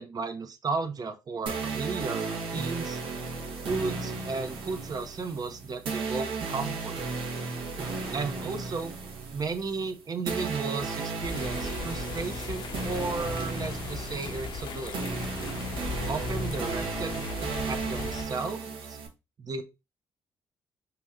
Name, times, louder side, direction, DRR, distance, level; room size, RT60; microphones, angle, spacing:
voice 1, 0.0-3.0 3.6-7.0 8.1-8.9 9.3-15.1 16.1-17.3 17.7-19.0 19.4-19.6, right 4 dB, 45° right, 8 dB, 0.8 m, -34 dB
sound 1, 1.5-19.1, right 4 dB, 75° right, 1.1 m, -35 dB
sound 2, 11.2-18.2, left 5 dB, 60° left, 0.8 m, -38 dB
2.9 x 2.6 x 3.5 m, 0.26 s
hypercardioid pair, 45°, 9 cm